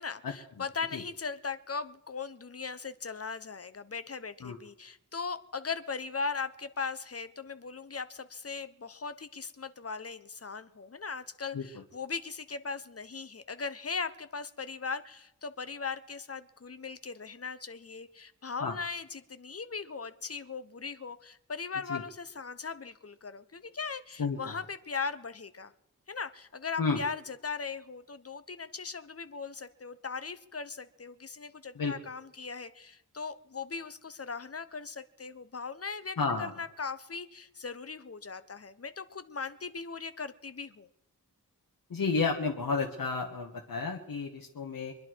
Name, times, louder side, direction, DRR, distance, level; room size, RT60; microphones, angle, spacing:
voice 1, 0.0-25.7 26.1-40.9, left 5 dB, 45° left, 12 dB, 1.2 m, -39 dB
voice 2, 24.2-24.6 26.8-27.0 31.7-31.9 36.2-36.5 41.9-44.9, left 4 dB, 90° left, 1 dB, 1.6 m, -31 dB
24.5 x 11.0 x 4.7 m, 0.86 s
wide cardioid pair, 65°, 34 cm